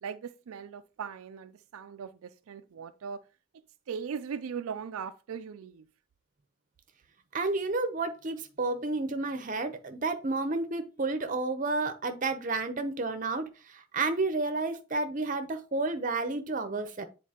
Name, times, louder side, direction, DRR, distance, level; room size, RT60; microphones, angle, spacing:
voice 1, 0.0-3.2 3.9-5.9, right 6 dB, 80° right, 0.4 m, -39 dB
voice 2, 7.3-17.1, right 3 dB, 35° right, 0.7 m, -31 dB
8.3 x 4.0 x 2.9 m
head